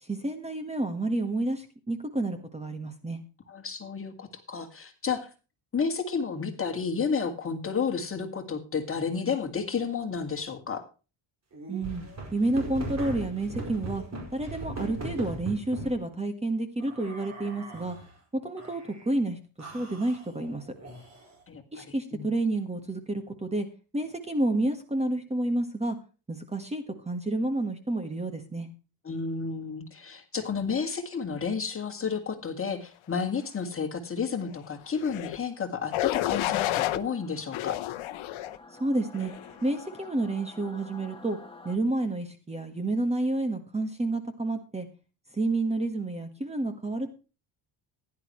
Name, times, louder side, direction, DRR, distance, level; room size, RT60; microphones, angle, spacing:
voice 1, 0.0-3.2 11.7-12.0 12.3-14.0 14.3-18.0 18.3-20.7 21.7-23.7 23.9-26.0 26.3-28.7 38.7-39.3 39.6-41.4 41.6-44.9 45.3-47.1, right 2 dB, 15° right, 7 dB, 1.5 m, -30 dB
voice 2, 3.5-5.3 5.7-10.8 21.5-21.8 22.1-22.3 29.0-37.8, left 5 dB, 30° left, 6 dB, 2.1 m, -31 dB
sound 1, 11.5-16.0 16.8-18.1 18.6-19.1 19.6-21.4, right 2 dB, 35° right, 5.2 m, -39 dB
Singing / Musical instrument, 34.6-41.8, left 3 dB, 10° left, 1.6 m, -51 dB
sound 2, 35.0-35.4 35.9-37.0 37.5-38.6 39.1-39.5, left 15 dB, 85° left, 0.9 m, -30 dB
15.5 x 11.0 x 3.1 m, 0.33 s
cardioid pair, 145°, 47 cm